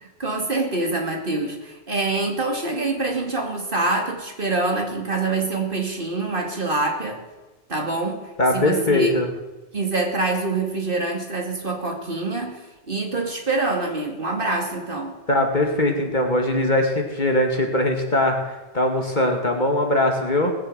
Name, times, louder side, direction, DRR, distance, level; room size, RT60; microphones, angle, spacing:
voice 1, 0.0-7.2 7.7-8.2 8.5-9.1 9.7-15.2, right 2 dB, 60° right, 2 dB, 2.8 m, -25 dB
voice 2, 8.4-9.3 15.3-20.5, left 1 dB, 50° left, 3 dB, 2.3 m, -21 dB
19.0 x 8.7 x 8.0 m, 1.1 s
omnidirectional pair, 1.0 m